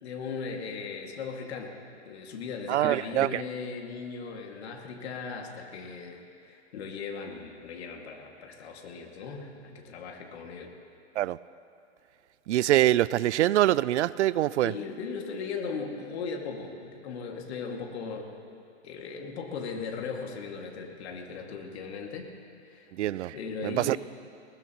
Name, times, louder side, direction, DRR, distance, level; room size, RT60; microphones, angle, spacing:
voice 1, 0.0-1.7 2.0-10.7 14.6-18.4 18.8-22.3 22.7-22.9 23.3-24.0, left 5 dB, 60° left, 1 dB, 2.3 m, -38 dB
voice 2, 2.7-3.4 11.2-11.4 12.5-14.7 23.0-23.3 23.6-24.0, right 14 dB, 70° right, 20 dB, 0.5 m, -24 dB
20.5 x 20.0 x 3.0 m, 2.5 s
hypercardioid pair, 145°, 36 cm